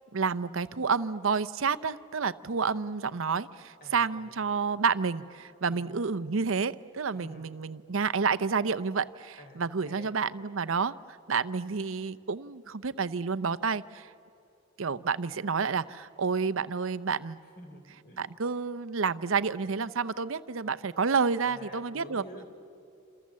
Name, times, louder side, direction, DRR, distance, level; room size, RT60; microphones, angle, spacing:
voice 1, 0.1-14.1 14.8-17.4 18.2-22.2, right 5 dB, 80° right, 14 dB, 0.7 m, -29 dB
voice 2, 3.8-4.3 5.7-5.9 7.1-7.5 9.4-10.1 17.6-18.3 21.5-22.5, left 1 dB, 50° left, 4 dB, 4.1 m, -49 dB
28.0 x 27.5 x 7.5 m, 2.6 s
head